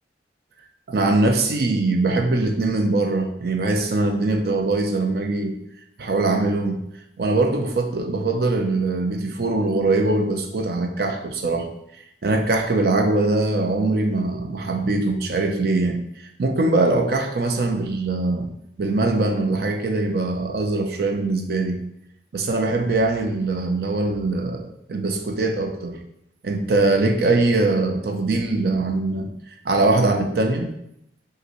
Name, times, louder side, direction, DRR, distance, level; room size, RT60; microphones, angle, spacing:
voice 1, 0.9-5.6 6.0-6.8 7.2-11.7 12.2-18.5 18.8-21.8 22.3-26.0 26.4-29.3 29.6-30.7, right 2 dB, 60° right, 4 dB, 0.5 m, -22 dB
5.2 x 2.6 x 3.0 m, 0.78 s
head